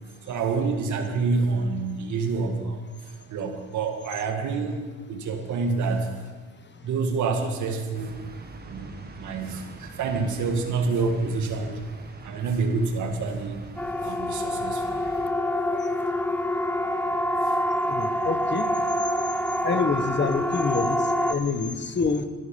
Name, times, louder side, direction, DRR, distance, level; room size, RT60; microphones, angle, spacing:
voice 1, 0.3-2.8 3.3-4.8 5.1-6.1 6.8-8.1 8.7-8.9 9.2-9.6 10.0-11.8 12.2-13.6 14.0-14.8, right 4 dB, 75° right, 4 dB, 1.9 m, -27 dB
sound 1, 7.9-15.3, right 3 dB, 30° right, 1.4 m, -44 dB
Siren, 13.8-21.3, left 1 dB, 5° left, 0.5 m, -26 dB
voice 2, 17.9-18.7 19.6-22.3, left 5 dB, 35° left, 9 dB, 1.3 m, -27 dB
17.0 x 9.6 x 5.4 m, 1.5 s
cardioid pair, 90°, 30 cm